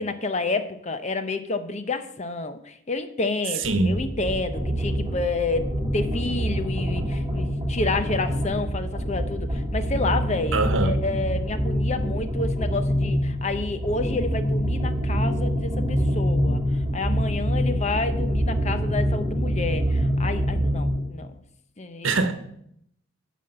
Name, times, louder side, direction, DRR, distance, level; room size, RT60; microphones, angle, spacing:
voice 1, 0.0-21.4 21.8-22.2, left 3 dB, 35° left, 0.7 m, -29 dB
sound 1, 3.6-21.1, equal, 10° right, 3.7 m, -25 dB
voice 2, 3.6-4.0 10.5-11.0 22.0-22.3, right 3 dB, 85° right, 1.0 m, -22 dB
9.6 x 5.1 x 7.8 m
head